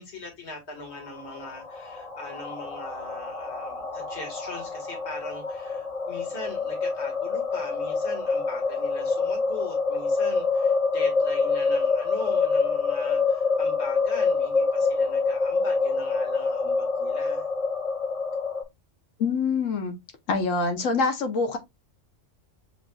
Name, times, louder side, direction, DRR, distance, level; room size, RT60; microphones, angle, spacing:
voice 1, 0.0-17.5, left 2 dB, 55° left, 1.9 m, -41 dB
sound 1, 0.8-18.6, left 4 dB, 35° left, 0.7 m, -26 dB
voice 2, 19.2-19.9 20.3-21.6, left 4 dB, 75° left, 1.2 m, -25 dB
7.1 x 2.5 x 2.2 m
omnidirectional pair, 1.3 m